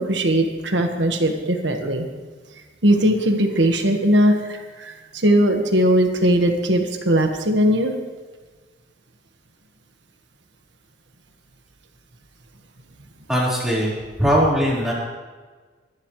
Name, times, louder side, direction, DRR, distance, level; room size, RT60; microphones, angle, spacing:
voice 1, 0.0-2.0 2.8-4.9 5.2-7.9, right 1 dB, 85° right, 4 dB, 1.6 m, -19 dB
voice 2, 13.3-14.9, equal, 5° right, -6 dB, 4.3 m, -20 dB
22.5 x 11.5 x 3.2 m, 1.4 s
head